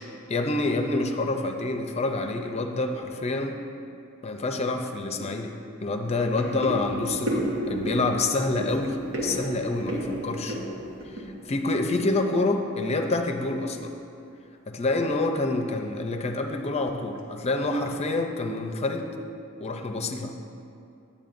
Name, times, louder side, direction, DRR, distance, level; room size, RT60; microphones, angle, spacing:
voice 1, 0.3-3.6 4.2-5.6 5.8-10.6 11.1-11.2 11.5-13.9 14.7-19.1 19.6-20.3, left 2 dB, 30° left, 5 dB, 0.5 m, -27 dB
sound 1, 4.9-5.0 5.4-5.5 5.9-12.4 12.7-13.3 13.7-13.9 14.2-14.3 14.8-15.0 15.3-15.5 16.0-16.5 17.0-17.2 17.5-18.2 18.6-18.7, right 1 dB, 70° right, 1.2 m, -33 dB
10.5 x 8.6 x 2.6 m, 2.5 s
head